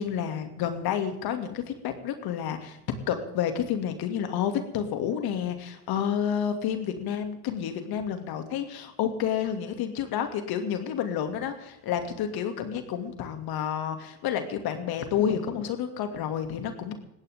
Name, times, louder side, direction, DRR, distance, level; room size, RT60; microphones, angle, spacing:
voice 1, 0.0-2.8 3.1-17.0, left 8 dB, 65° left, 7 dB, 2.6 m, -30 dB
20.5 x 16.5 x 3.7 m, 0.87 s
hypercardioid pair, 65°, 40 cm